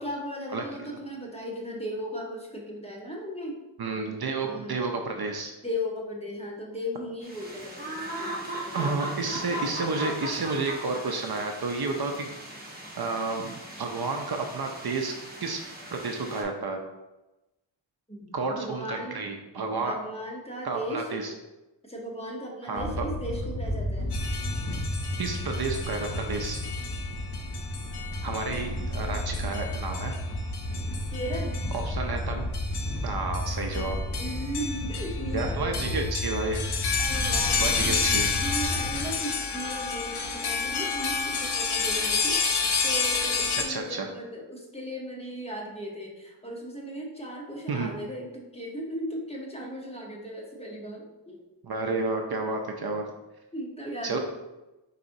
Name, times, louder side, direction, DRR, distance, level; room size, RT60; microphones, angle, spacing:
voice 1, 0.0-3.6 4.4-4.8 5.6-9.4 18.1-19.3 19.7-21.2 21.8-24.1 31.1-31.6 34.2-36.0 37.0-42.4 42.8-51.4 53.5-54.2, equal, 15° left, -2 dB, 0.9 m, -37 dB
voice 2, 3.8-5.5 8.7-12.3 13.0-15.1 15.4-15.6 15.9-16.8 18.3-20.0 20.6-21.3 22.7-23.1 25.2-26.6 28.2-30.1 31.7-32.5 33.0-34.0 35.3-36.6 37.6-38.3 43.7-44.1 47.7-47.9 51.6-53.1 54.0-54.2, right 3 dB, 55° right, 4 dB, 0.5 m, -31 dB
sound 1, 7.2-16.4, right 1 dB, 20° right, 1.0 m, -38 dB
sound 2, 22.8-39.1, equal, 45° left, 1.3 m, -32 dB
sound 3, 24.1-43.6, left 5 dB, 60° left, 0.7 m, -31 dB
4.8 x 4.1 x 2.6 m, 1.0 s
wide cardioid pair, 85°, 46 cm